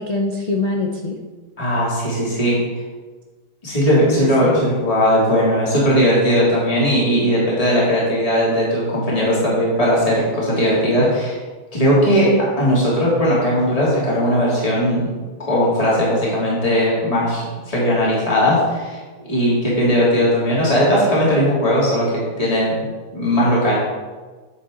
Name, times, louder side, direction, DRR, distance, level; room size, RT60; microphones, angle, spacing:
voice 1, 0.1-1.2 4.0-4.7 10.9-11.1, left 2 dB, 90° left, 1 dB, 0.3 m, -24 dB
voice 2, 1.6-2.6 3.6-11.4 11.7-12.3 12.6-15.0 15.5-19.0 19.3-22.1 22.4-22.7 23.1-23.7, equal, 20° left, -7 dB, 2.7 m, -18 dB
9.6 x 7.2 x 3.8 m, 1.3 s
omnidirectional pair, 1.8 m